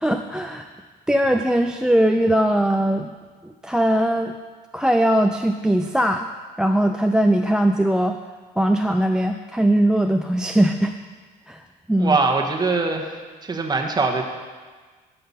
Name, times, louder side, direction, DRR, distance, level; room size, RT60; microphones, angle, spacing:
voice 1, 0.0-0.7 1.1-3.1 3.4-4.3 4.7-6.3 6.6-8.2 8.6-10.9 11.5-11.6 11.9-12.2, right 1 dB, 5° right, 6 dB, 0.4 m, -20 dB
voice 2, 12.0-14.2, right 3 dB, 25° right, 3 dB, 1.3 m, -22 dB
12.5 x 5.9 x 5.5 m, 1.4 s
cardioid pair, 110°, 17 cm